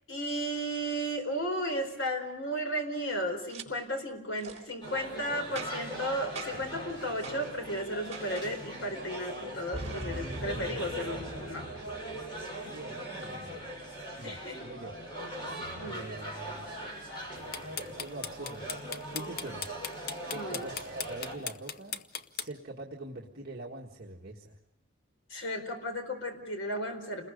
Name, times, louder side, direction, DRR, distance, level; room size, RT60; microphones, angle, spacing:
voice 1, 0.1-11.7 14.2-14.6 15.8-16.1 20.3-20.7 25.3-27.3, equal, 65° left, 5 dB, 4.4 m, -34 dB
Boom, 3.5-3.7 4.4-4.6 5.6-6.0 6.4-6.7 7.2-7.4 8.1-8.5 9.7-12.4, right 2 dB, 30° right, 3.4 m, -41 dB
sound 1, 4.8-21.4, right 1 dB, 25° left, 6.7 m, -41 dB
voice 2, 12.7-13.6 14.2-15.0 15.8-16.7 17.8-18.7 19.1-19.8 20.2-22.0 22.3-24.6, right 2 dB, 50° right, -2 dB, 1.7 m, -43 dB
sound 2, 17.3-22.5, left 7 dB, 45° left, 0.8 m, -37 dB
29.5 x 21.0 x 5.3 m, 0.84 s
head